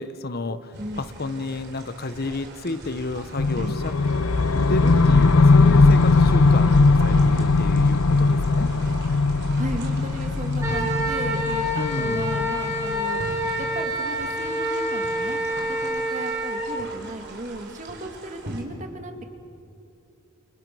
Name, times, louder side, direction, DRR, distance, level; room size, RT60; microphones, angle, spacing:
voice 1, 0.0-3.9 4.7-8.7 11.7-12.4, left 2 dB, 45° left, 11 dB, 0.9 m, -31 dB
sound 1, 0.7-18.6, right 2 dB, 55° right, 4.3 m, -40 dB
sound 2, 3.4-13.4, left 3 dB, 90° left, 0.8 m, -19 dB
voice 2, 9.6-13.2 13.6-15.4 15.7-19.1, right 1 dB, 35° right, 4 dB, 2.5 m, -35 dB
Wind instrument woodwind instrument, 10.6-16.7, equal, 15° right, 4.9 m, -27 dB
29.0 x 28.5 x 6.3 m, 2.7 s
head